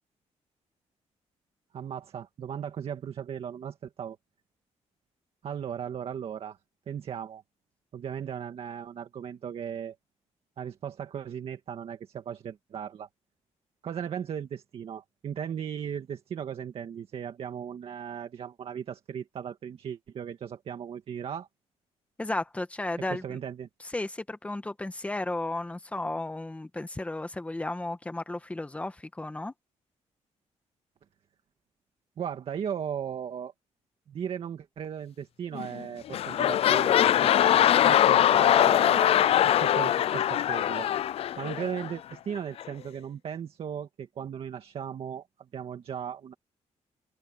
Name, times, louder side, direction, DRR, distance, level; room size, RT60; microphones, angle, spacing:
voice 1, 1.7-4.2 5.4-6.6 6.9-7.4 7.9-10.0 10.6-13.1 13.8-21.5 23.1-23.7 32.2-33.5 34.1-40.9 41.4-46.3, right 8 dB, 50° right, 1.9 m, -37 dB
voice 2, 22.2-23.4 23.8-29.5, left 2 dB, 10° left, 1.3 m, -34 dB
sound 1, 35.5-35.8 36.1-41.9 42.6-42.7, left 11 dB, 55° left, 0.4 m, -22 dB
cardioid pair, 160°, 12 cm